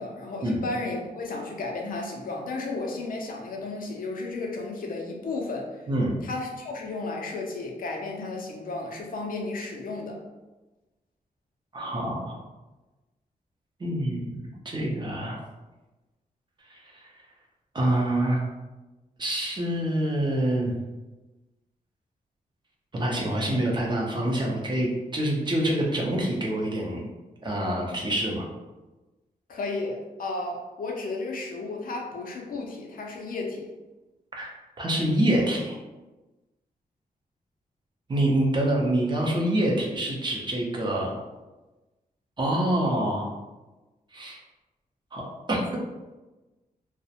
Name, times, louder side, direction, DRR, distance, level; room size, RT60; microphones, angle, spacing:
voice 1, 0.0-5.7 6.2-10.2 29.5-33.7, left 3 dB, 65° left, 0 dB, 0.4 m, -33 dB
voice 2, 5.9-6.3 11.7-12.4 13.8-14.3 14.6-15.4 16.7-17.0 17.7-18.4 19.2-20.7 22.9-27.1 27.4-28.5 34.3-34.5 34.8-35.8 38.1-41.1 42.4-43.3 44.1-44.4 45.1-45.8, right 1 dB, 30° right, -2 dB, 0.5 m, -26 dB
2.4 x 2.0 x 2.7 m, 1.1 s
wide cardioid pair, 125°, 16 cm